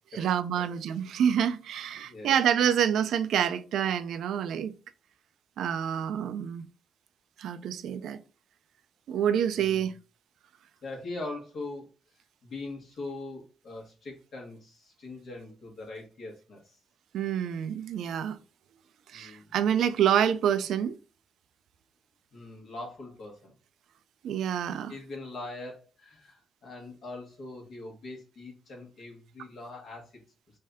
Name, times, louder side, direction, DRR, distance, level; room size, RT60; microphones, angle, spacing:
voice 1, 0.2-4.7 5.6-6.7 7.4-8.2 9.1-9.9 17.1-18.4 19.1-21.0 24.2-24.9, right 9 dB, 75° right, 0.3 m, -27 dB
voice 2, 2.0-2.4 9.5-9.9 10.8-11.9 12.4-16.8 19.1-19.6 22.3-23.5 24.9-30.1, left 2 dB, 65° left, 1.5 m, -42 dB
3.3 x 2.7 x 3.5 m
supercardioid pair, 65°, 0 cm